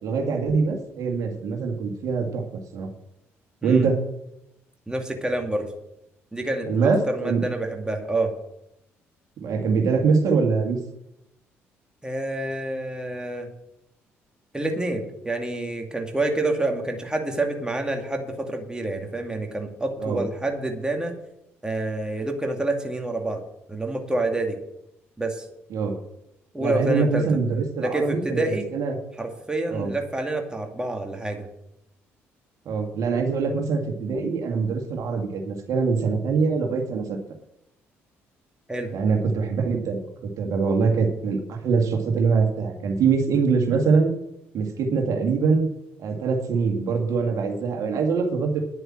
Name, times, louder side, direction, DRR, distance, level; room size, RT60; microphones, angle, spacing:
voice 1, 0.0-2.4 2.7-2.9 3.6-4.0 6.7-7.4 9.4-10.8 20.0-20.2 25.7-25.9 26.6-29.0 29.7-29.9 32.7-37.2 38.9-40.0 40.4-44.1 44.5-45.7 46.0-48.6, right 5 dB, 60° right, 2 dB, 2.2 m, -23 dB
voice 2, 4.9-5.7 6.3-6.7 7.1-8.3 12.0-13.5 14.5-21.2 21.6-23.4 23.7-24.6 25.2-25.5 26.5-27.3 27.8-28.7 29.2-31.5 38.7-38.9, right 2 dB, 10° right, 3 dB, 2.3 m, -27 dB
10.5 x 7.9 x 7.6 m, 0.82 s
hypercardioid pair, 50°, 6 cm